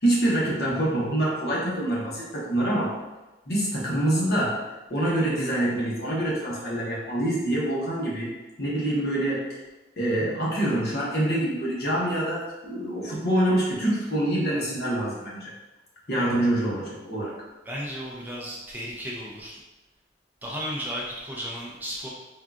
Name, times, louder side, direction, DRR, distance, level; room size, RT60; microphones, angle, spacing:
voice 1, 0.0-3.0 3.5-4.6 4.9-8.3 8.6-9.5 10.0-15.5 16.1-17.3, right 1 dB, 60° left, -5 dB, 0.9 m, -25 dB
voice 2, 17.7-19.6 20.4-22.1, equal, 10° right, -4 dB, 0.4 m, -34 dB
3.6 x 2.3 x 2.4 m, 1.1 s
head